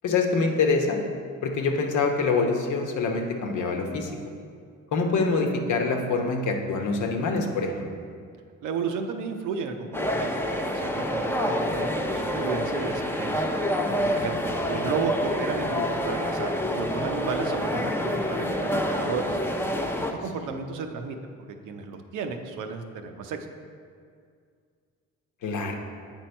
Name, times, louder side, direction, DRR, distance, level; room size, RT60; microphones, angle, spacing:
voice 1, 0.0-1.0 1.4-4.1 4.9-7.9 25.4-25.7, left 4 dB, 75° left, 2 dB, 1.0 m, -25 dB
voice 2, 8.6-10.3 10.7-13.5 14.1-19.4 20.2-23.5, right 5 dB, 85° right, 5 dB, 0.7 m, -33 dB
sound 1, 9.9-20.1, equal, 10° left, 0.6 m, -27 dB
8.3 x 4.5 x 4.4 m, 2.2 s
cardioid pair, 90°, 30 cm